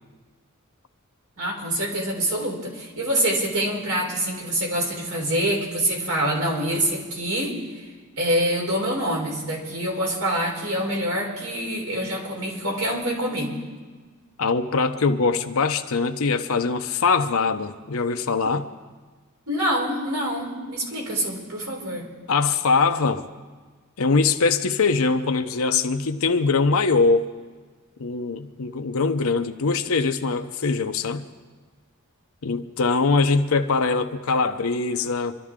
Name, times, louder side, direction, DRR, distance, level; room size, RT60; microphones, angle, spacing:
voice 1, 1.4-7.9 8.2-13.6 19.5-22.1, right 1 dB, 85° right, -1 dB, 3.8 m, -26 dB
voice 2, 14.4-18.7 22.3-23.3 24.0-27.2 28.0-31.2 32.4-35.3, left 4 dB, 75° left, 6 dB, 0.7 m, -22 dB
25.0 x 12.5 x 3.7 m, 1.4 s
head